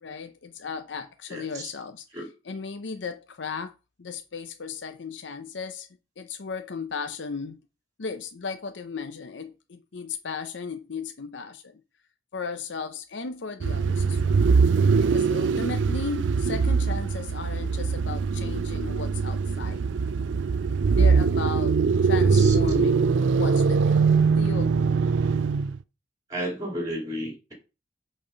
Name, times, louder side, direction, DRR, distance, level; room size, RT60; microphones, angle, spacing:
voice 1, 0.0-3.7 4.0-5.9 6.2-7.6 8.0-11.8 12.3-14.4 15.0-19.9 21.0-25.0, left 5 dB, 80° left, 0.7 m, -36 dB
voice 2, 1.3-1.6 2.1-2.3 22.2-22.5 26.3-27.5, equal, 20° right, 2.3 m, -33 dB
sound 1, 13.6-25.8, right 5 dB, 85° right, 0.4 m, -22 dB
8.6 x 4.3 x 5.1 m
head